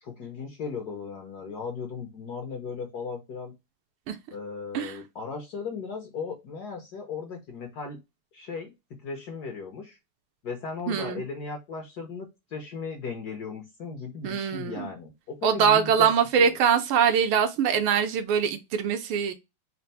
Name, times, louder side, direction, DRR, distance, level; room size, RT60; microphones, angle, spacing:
voice 1, 0.0-3.5 4.3-8.0 8.3-8.7 9.0-10.0 10.4-16.1 16.4-16.6, left 5 dB, 65° left, 1.0 m, -36 dB
voice 2, 10.9-11.2 14.2-14.9 15.4-19.3, right 7 dB, 80° right, 1.4 m, -23 dB
4.3 x 2.0 x 4.0 m
omnidirectional pair, 2.4 m